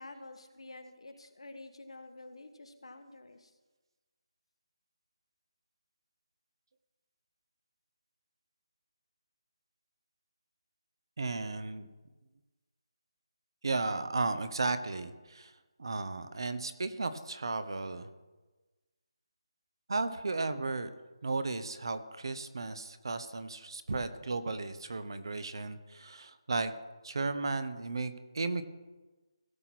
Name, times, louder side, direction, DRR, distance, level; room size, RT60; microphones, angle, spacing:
voice 1, 0.0-3.5, left 2 dB, 85° left, 8 dB, 1.3 m, -49 dB
voice 2, 11.2-11.9 13.6-18.1 19.9-20.9 21.2-26.7 27.0-28.6, right 3 dB, 55° right, 11 dB, 0.9 m, -34 dB
17.5 x 6.0 x 4.2 m, 1.2 s
figure-of-eight pair, 175°, 3 cm